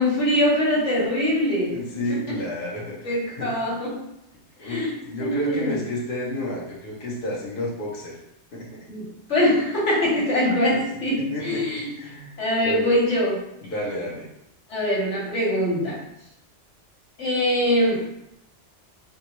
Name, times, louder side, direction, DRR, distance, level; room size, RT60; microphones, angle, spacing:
voice 1, 0.0-1.7 2.1-2.2 3.0-3.9 4.6-4.9 5.2-5.7 8.9-11.9 12.4-13.4 14.7-16.0 17.2-18.0, left 1 dB, 85° left, -5 dB, 1.3 m, -23 dB
voice 2, 1.7-3.5 4.6-8.2 8.5-8.9 10.7-10.8 11.3-11.7 11.9-12.3 12.6-12.9 13.6-14.3, left 1 dB, 55° left, -5 dB, 0.9 m, -31 dB
3.6 x 2.2 x 2.9 m, 0.81 s
omnidirectional pair, 1.2 m